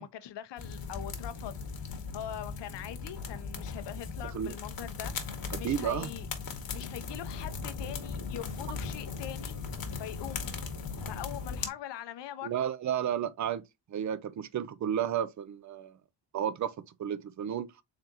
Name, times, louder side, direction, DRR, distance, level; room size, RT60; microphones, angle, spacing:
voice 1, 0.0-1.6 2.1-5.2 5.6-6.3 6.7-9.6 10.0-10.5 11.0-12.5, left 11 dB, 70° left, 0.8 m, -42 dB
sound 1, 0.6-11.7, left 5 dB, 50° left, 1.2 m, -38 dB
voice 2, 5.6-6.1 12.4-16.0 16.3-16.7 17.0-17.7, right 9 dB, 40° right, 0.5 m, -32 dB
3.8 x 3.4 x 2.8 m
cardioid pair, 65°, 44 cm